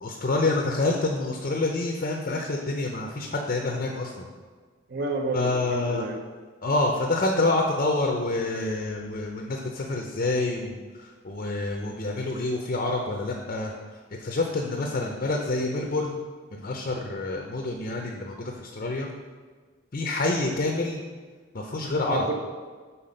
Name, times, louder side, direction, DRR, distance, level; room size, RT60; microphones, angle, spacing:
voice 1, 0.0-4.3 5.3-6.1 6.6-13.7 14.2-16.2 16.5-19.1 19.9-21.0 21.5-22.3, left 2 dB, 40° left, 1 dB, 0.5 m, -27 dB
voice 2, 4.9-6.2 22.1-22.3, right 2 dB, 50° right, 3 dB, 0.7 m, -30 dB
5.7 x 4.1 x 5.2 m, 1.5 s
head